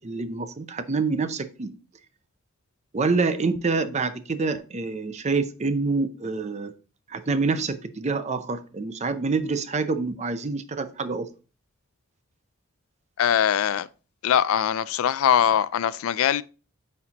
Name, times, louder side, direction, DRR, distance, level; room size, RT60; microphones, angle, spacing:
voice 1, 0.0-1.7 2.9-6.7 7.1-11.3, right 4 dB, 35° right, 0.5 m, -26 dB
voice 2, 13.2-13.9 14.2-16.4, left 9 dB, 85° left, 0.3 m, -22 dB
8.4 x 4.3 x 2.9 m
head